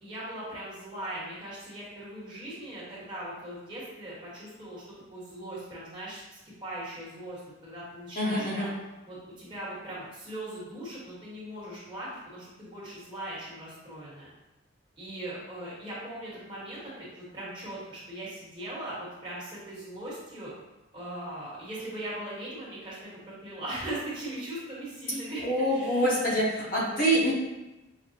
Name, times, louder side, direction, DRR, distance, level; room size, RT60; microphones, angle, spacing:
voice 1, 0.0-4.8 5.1-8.7 9.1-14.3 15.0-20.5 20.9-26.4 26.7-27.1, right 1 dB, 20° right, -8 dB, 1.2 m, -40 dB
voice 2, 8.2-8.7 25.4-27.3, equal, 40° left, -6 dB, 0.8 m, -26 dB
5.9 x 2.1 x 2.7 m, 1.0 s
head